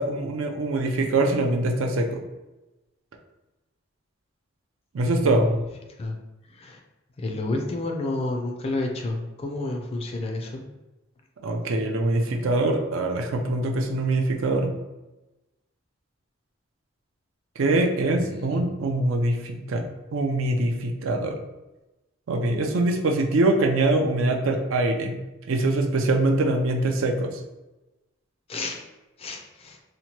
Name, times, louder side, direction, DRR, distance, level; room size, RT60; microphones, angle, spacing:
voice 1, 0.0-2.2 4.9-5.5 11.4-14.7 17.6-19.9 20.1-21.4 22.3-25.2 25.5-27.4, right 2 dB, 75° right, 3 dB, 0.4 m, -23 dB
voice 2, 5.0-5.6 6.0-6.2 6.5-6.8 7.2-10.6 18.2-18.6 28.5-28.8 29.2-29.8, left 2 dB, 30° left, 2 dB, 0.3 m, -30 dB
2.8 x 2.1 x 2.8 m, 1.0 s
head